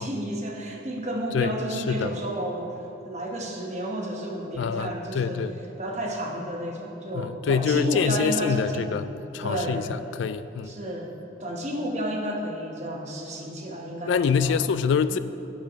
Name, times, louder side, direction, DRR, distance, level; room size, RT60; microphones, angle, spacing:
voice 1, 0.0-5.5 5.8-9.1 9.4-9.9 10.6-11.1 11.4-14.6 15.1-15.2, right 1 dB, 35° right, 0 dB, 1.0 m, -31 dB
voice 2, 4.6-4.9 5.1-5.5 7.2-9.0 9.3-9.8 10.2-10.7 14.1-15.2, left 6 dB, 80° left, 14 dB, 0.3 m, -25 dB
8.6 x 6.1 x 5.1 m, 3.0 s
head